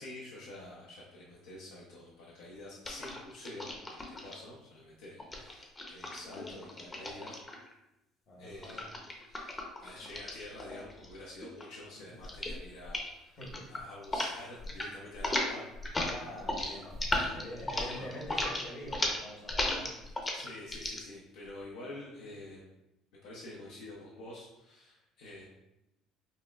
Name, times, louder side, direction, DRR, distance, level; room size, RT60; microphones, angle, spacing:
voice 1, 0.0-7.4 8.4-13.4 13.7-15.6 16.6-17.4 17.7-18.2 20.3-22.7 23.2-25.5, left 1 dB, 85° left, -4 dB, 0.6 m, -48 dB
sound 1, 2.8-4.3 5.2-7.7 8.6-11.2 11.4-11.8 12.2-12.6 12.8-13.1 13.4-14.3 14.6-14.9 15.1-21.0, left 1 dB, 20° left, 0.6 m, -35 dB
voice 2, 8.3-8.8 12.1-12.2 13.4-13.7 16.0-17.0 17.3-20.0, left 1 dB, 55° left, -2 dB, 1.1 m, -45 dB
5.3 x 2.0 x 2.3 m, 0.92 s
supercardioid pair, 100°, 0 cm